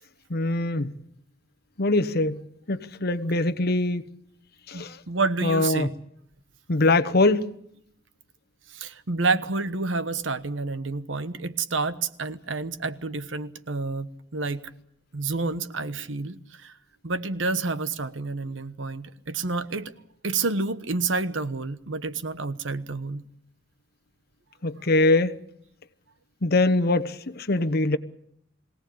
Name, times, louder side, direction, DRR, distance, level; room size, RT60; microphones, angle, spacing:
voice 1, 0.3-0.9 1.8-2.4 2.7-4.0 4.7-5.0 5.4-5.9 6.7-7.6 24.6-25.4 26.4-28.0, left 2 dB, 55° left, 1.1 m, -23 dB
voice 2, 4.7-5.9 8.7-14.6 15.1-16.7 17.0-19.9 20.2-23.2, right 3 dB, 75° right, 1.2 m, -29 dB
23.0 x 17.5 x 8.7 m
head